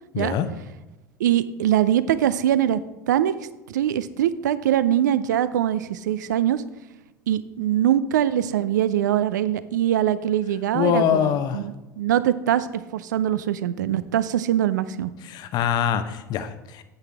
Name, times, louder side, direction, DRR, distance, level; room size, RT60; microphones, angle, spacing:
voice 1, 0.1-0.5 10.7-11.6 15.2-16.8, left 9 dB, 40° left, 10 dB, 0.7 m, -24 dB
voice 2, 1.2-2.8 3.1-3.3 3.7-6.6 7.3-12.7 12.9-15.1, right 11 dB, 65° right, 15 dB, 0.5 m, -22 dB
9.9 x 8.2 x 3.4 m, 1.1 s
figure-of-eight pair, 75°, 10 cm